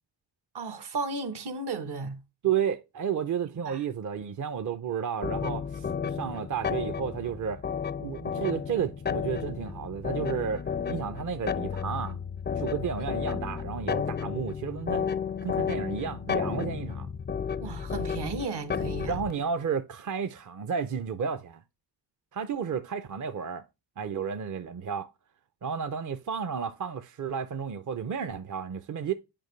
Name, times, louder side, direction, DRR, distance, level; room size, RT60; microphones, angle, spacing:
voice 1, 0.5-2.2 3.5-3.8 13.1-13.2 17.6-19.1, right 3 dB, 65° right, 1.2 m, -34 dB
voice 2, 2.4-7.6 8.0-12.2 12.6-15.1 15.4-17.1 19.0-21.6 22.3-23.6 24.0-25.1 25.6-29.1, right 7 dB, 45° right, 0.6 m, -32 dB
sound 1, 5.2-19.4, left 7 dB, 25° left, 0.4 m, -32 dB
8.9 x 5.1 x 3.1 m
cardioid pair, 90°, 43 cm